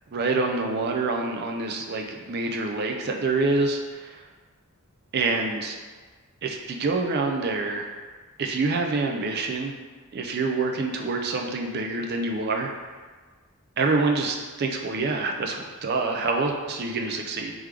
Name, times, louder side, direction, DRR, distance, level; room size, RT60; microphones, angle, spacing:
voice 1, 0.1-4.2 5.1-5.8 6.4-7.9 8.4-9.8 10.1-12.7 13.8-17.5, right 3 dB, 45° right, 2 dB, 0.4 m, -26 dB
3.5 x 3.3 x 3.3 m, 1.4 s
head